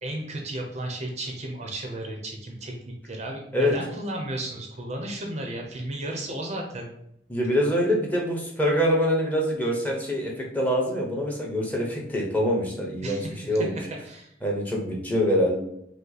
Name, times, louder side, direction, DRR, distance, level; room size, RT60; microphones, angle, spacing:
voice 1, 0.0-6.9 13.0-13.7 14.0-14.3, right 1 dB, 40° right, 2 dB, 0.6 m, -34 dB
voice 2, 7.3-13.2 13.5-13.8 14.4-15.6, equal, 10° left, -2 dB, 0.9 m, -24 dB
5.4 x 2.0 x 4.0 m, 0.74 s
head